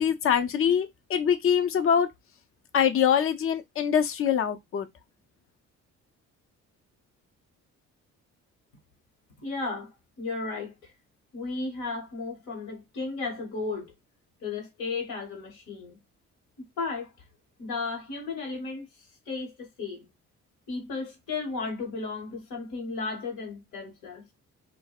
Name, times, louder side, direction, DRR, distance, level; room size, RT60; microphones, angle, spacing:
voice 1, 0.0-2.1 2.7-4.9, left 8 dB, 45° left, 0.5 m, -24 dB
voice 2, 9.4-10.9 11.3-13.9 14.4-16.0 16.8-17.1 17.6-18.9 19.3-20.1 20.7-24.3, left 3 dB, 90° left, 1.1 m, -34 dB
2.6 x 2.1 x 2.3 m
cardioid pair, 90°, 30 cm